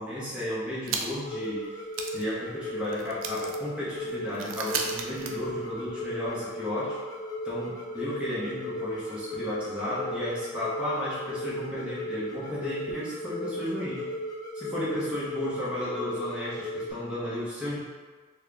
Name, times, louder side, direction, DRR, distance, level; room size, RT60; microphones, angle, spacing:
voice 1, 0.0-1.6 2.1-7.0 7.4-14.1 14.5-17.8, left 1 dB, 5° right, -9 dB, 0.9 m, -33 dB
sound 1, 0.8-1.4 1.6-1.7 1.9-6.1, right 5 dB, 70° right, 0.4 m, -36 dB
sound 2, 1.2-16.9, equal, 20° left, 0.4 m, -36 dB
4.3 x 2.3 x 3.3 m, 1.4 s
head